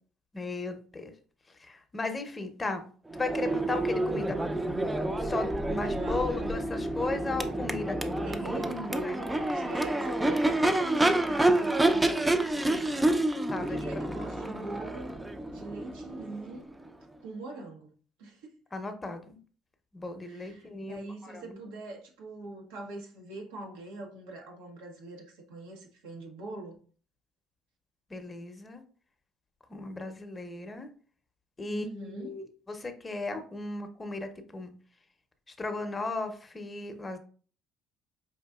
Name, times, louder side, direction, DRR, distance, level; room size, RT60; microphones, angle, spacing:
voice 1, 0.3-1.1 1.6-2.9 3.1-4.4 5.2-8.5 9.0-9.2 13.5-14.2 18.7-19.4 19.9-21.6 28.1-28.8 29.7-30.9 31.6-34.7 35.6-37.2, left 3 dB, 25° left, 0.7 m, -36 dB
Crowd / Race car auto racing / Accelerating revving vroom, 3.1-16.9, right 1 dB, 15° right, 0.5 m, -28 dB
voice 2, 5.8-6.4 8.2-15.1 15.4-16.7 17.2-17.9 18.2-18.5 20.2-26.8 31.7-32.4, right 2 dB, 85° right, 1.0 m, -43 dB
4.9 x 2.6 x 2.3 m
supercardioid pair, 70°, 0 cm